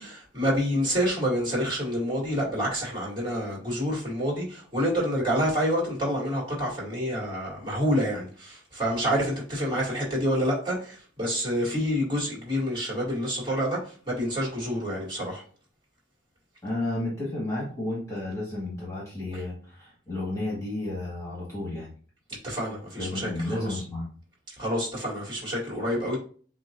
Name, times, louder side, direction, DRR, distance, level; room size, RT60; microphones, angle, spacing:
voice 1, 0.0-15.4 19.3-19.4 22.4-23.8 24.5-26.2, equal, 25° right, 2.2 m, -28 dB
voice 2, 16.6-21.9 23.0-24.1, left 2 dB, 15° left, 1.7 m, -32 dB
7.6 x 2.6 x 2.5 m
head